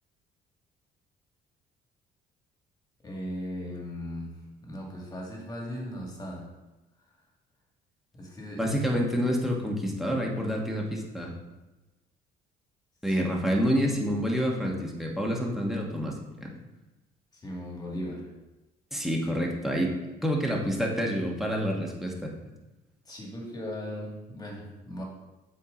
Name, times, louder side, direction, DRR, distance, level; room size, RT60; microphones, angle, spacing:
voice 1, 3.0-6.5 8.1-9.0 13.0-13.2 17.3-18.3 23.0-25.0, equal, 25° left, -1 dB, 2.0 m, -38 dB
voice 2, 8.6-11.3 13.0-16.5 18.9-20.0 20.2-22.3, equal, ahead, -1 dB, 1.3 m, -28 dB
7.5 x 4.5 x 3.8 m, 1.1 s
cardioid pair, 110°, 17 cm